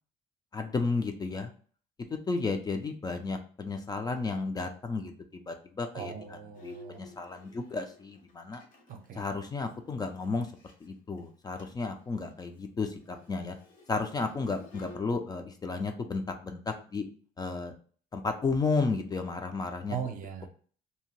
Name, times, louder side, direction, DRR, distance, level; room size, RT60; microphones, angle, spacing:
voice 1, 0.5-1.5 2.3-6.1 6.6-8.6 9.2-10.5 10.8-13.6 13.9-17.0 17.4-17.7 18.1-20.0, left 4 dB, 25° left, 5 dB, 0.3 m, -33 dB
voice 2, 5.9-7.1 8.9-9.4 19.9-20.5, right 7 dB, 55° right, 6 dB, 0.6 m, -39 dB
Bowed string instrument, 6.5-10.9 11.2-11.3 11.6-11.9 12.1-15.0, left 2 dB, 55° left, 0.8 m, -54 dB
2.7 x 2.1 x 2.9 m, 0.44 s
cardioid pair, 110°, 17 cm